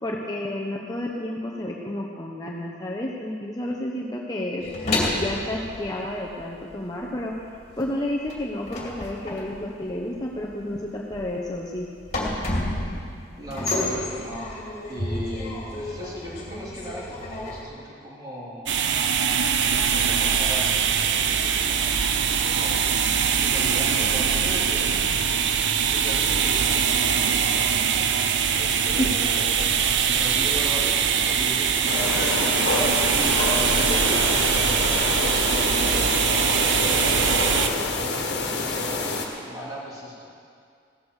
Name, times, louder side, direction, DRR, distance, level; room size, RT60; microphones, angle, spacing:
voice 1, 0.0-4.7 5.2-7.3 7.8-11.9 28.9-29.1, left 1 dB, 20° left, -3 dB, 0.9 m, -30 dB
sound 1, 4.6-6.8 7.1-17.6, left 1 dB, 35° left, 2.4 m, -31 dB
voice 2, 13.4-14.4 14.9-18.7 19.7-25.2 25.9-28.1 28.6-29.7 30.0-33.2 33.6-37.9 38.4-40.2, equal, 20° right, -6 dB, 3.4 m, -37 dB
sound 2, 18.7-37.7, right 7 dB, 65° right, 0.6 m, -22 dB
sound 3, 31.9-39.3, left 3 dB, 60° left, 1.6 m, -26 dB
16.0 x 13.0 x 4.9 m, 2.3 s
head